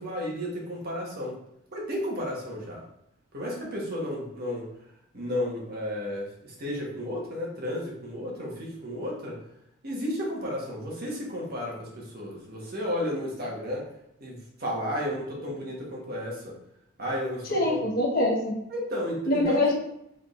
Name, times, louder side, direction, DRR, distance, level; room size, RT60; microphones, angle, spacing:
voice 1, 0.0-1.4 1.7-2.8 3.3-4.7 5.1-9.4 9.8-13.8 14.2-16.5 17.0-17.8 18.7-19.6, left 1 dB, 50° right, -2 dB, 1.3 m, -33 dB
voice 2, 17.5-18.5 19.3-19.7, left 1 dB, 45° left, -3 dB, 1.2 m, -24 dB
4.4 x 3.6 x 2.5 m, 0.80 s
head